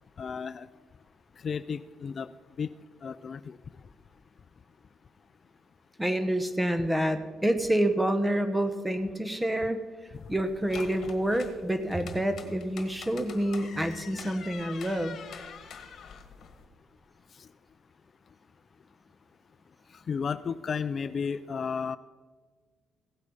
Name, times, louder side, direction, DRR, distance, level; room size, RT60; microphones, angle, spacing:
voice 1, 0.2-0.7 1.4-2.3 2.6-2.8 3.0-3.6 10.1-10.2 17.3-17.5 19.9-22.0, left 6 dB, 45° left, 15 dB, 0.3 m, -33 dB
voice 2, 6.0-9.8 10.3-15.2, right 1 dB, 10° right, 9 dB, 1.1 m, -28 dB
sound 1, 10.1-16.7, left 7 dB, 60° left, 1.5 m, -46 dB
16.0 x 8.3 x 5.4 m, 1.4 s
cardioid pair, 90°, 0 cm